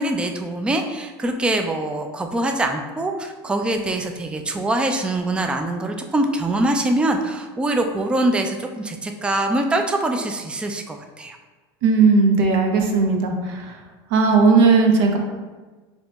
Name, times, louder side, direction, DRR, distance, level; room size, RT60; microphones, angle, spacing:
voice 1, 0.0-11.4, right 1 dB, 10° right, 4 dB, 0.3 m, -23 dB
voice 2, 11.8-13.7 14.1-15.2, right 4 dB, 70° right, 2 dB, 0.8 m, -16 dB
6.7 x 2.9 x 2.3 m, 1.3 s
supercardioid pair, 110°, 12 cm